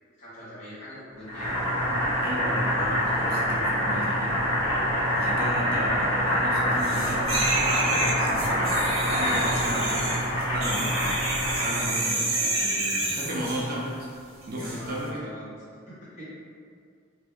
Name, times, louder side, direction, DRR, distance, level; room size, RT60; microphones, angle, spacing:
voice 1, 0.2-1.6 5.5-5.7 9.3-9.6 11.3-11.9 14.5-16.2, equal, 35° left, -11 dB, 1.2 m, -42 dB
Boiling, 1.3-11.9, equal, 80° left, 1.4 m, -26 dB
voice 2, 2.2-4.5 5.1-8.8 9.1-10.1 10.5-11.0 11.5-14.1 14.5-15.1, equal, 45° right, -4 dB, 0.5 m, -33 dB
sound 1, 6.8-13.7 14.6-14.8, right 2 dB, 75° right, 0.9 m, -29 dB
2.7 x 2.6 x 3.3 m, 2.2 s
head